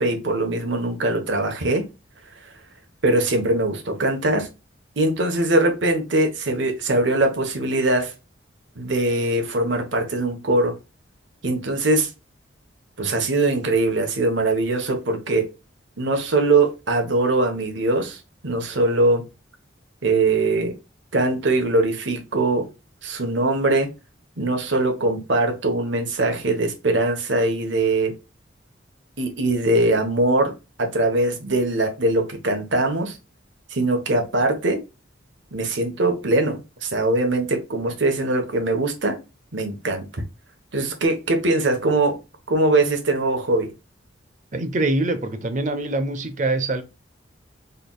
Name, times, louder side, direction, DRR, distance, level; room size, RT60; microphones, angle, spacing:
voice 1, 0.0-1.9 3.0-4.5 5.0-8.1 8.8-10.7 11.4-12.1 13.0-15.5 16.0-19.2 20.0-20.7 21.1-22.7 23.0-23.9 24.4-28.1 29.2-30.5 30.8-33.2 33.7-34.8 35.5-39.2 39.5-40.2 40.7-42.2 42.5-43.7, right 2 dB, 70° right, 1.1 m, -21 dB
voice 2, 44.5-46.8, right 2 dB, 40° right, 0.6 m, -24 dB
3.9 x 3.3 x 2.3 m
head